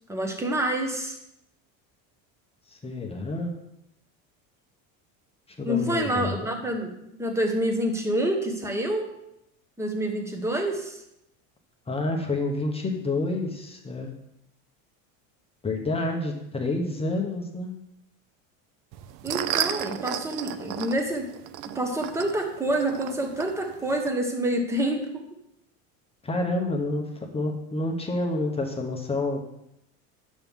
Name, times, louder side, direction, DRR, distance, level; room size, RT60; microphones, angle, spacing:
voice 1, 0.1-1.2 5.6-9.1 9.8-11.0 19.2-21.3 21.7-25.2, right 1 dB, 5° right, 4 dB, 1.1 m, -27 dB
voice 2, 2.7-3.5 5.6-6.5 11.9-14.1 15.6-17.7 26.2-29.4, left 2 dB, 15° left, 1 dB, 0.9 m, -28 dB
sound 1, 18.9-24.1, right 11 dB, 50° right, 0.5 m, -33 dB
8.9 x 7.2 x 3.6 m, 0.82 s
supercardioid pair, 130°, 41 cm